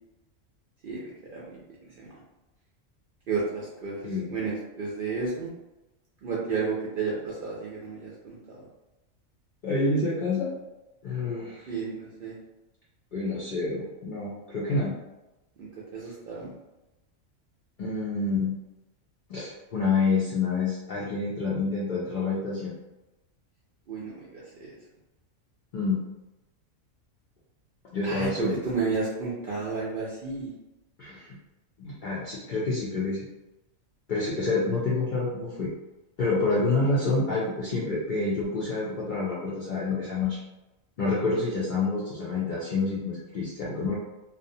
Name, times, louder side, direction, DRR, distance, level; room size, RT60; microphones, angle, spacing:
voice 1, 1.3-1.6 2.0-2.1 3.3-5.5 6.2-8.6 11.7-12.4 15.6-16.5 23.9-24.7 28.0-30.5, right 4 dB, 65° right, -6 dB, 0.5 m, -32 dB
voice 2, 4.0-4.3 9.6-10.5 11.0-11.7 13.1-14.9 17.8-18.5 19.3-22.7 25.7-26.0 27.9-28.6 31.0-31.4 31.8-33.3 34.1-35.7 36.2-40.4 41.0-43.9, left 3 dB, 70° left, -6 dB, 0.4 m, -28 dB
2.5 x 2.0 x 2.6 m, 1.0 s
omnidirectional pair, 1.3 m